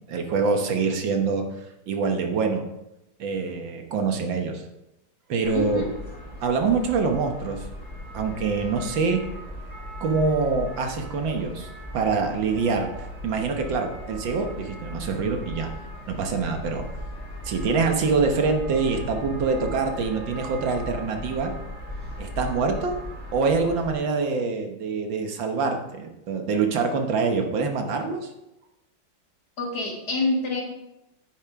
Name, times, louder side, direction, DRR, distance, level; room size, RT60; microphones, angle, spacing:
voice 1, 0.0-1.5 1.9-2.6 3.2-4.6 5.3-5.9 6.4-7.7 8.1-9.2 10.0-11.7 11.9-12.9 13.2-15.7 16.1-16.9 17.5-21.5 22.2-22.9 23.3-28.3, right 4 dB, 75° right, 4 dB, 1.9 m, -25 dB
sound 1, 5.4-23.9, equal, 25° left, 3.5 m, -38 dB
voice 2, 5.5-5.9 29.6-30.6, left 2 dB, 55° left, -1 dB, 2.5 m, -26 dB
9.8 x 9.1 x 3.6 m, 0.91 s
omnidirectional pair, 2.1 m